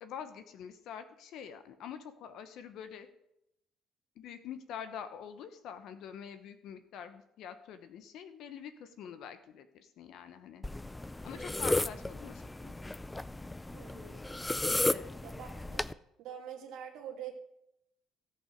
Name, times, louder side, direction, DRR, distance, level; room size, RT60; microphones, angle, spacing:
voice 1, 0.0-3.1 4.2-10.6 11.2-12.9 14.9-15.1, left 8 dB, 65° left, 10 dB, 0.9 m, -46 dB
sound 1, 10.6-15.9, left 2 dB, 10° left, 0.3 m, -34 dB
voice 2, 13.7-14.2 15.2-15.9 16.2-17.3, right 9 dB, 75° right, 1 dB, 2.5 m, -45 dB
16.5 x 5.6 x 5.2 m, 0.80 s
cardioid pair, 125°, 0 cm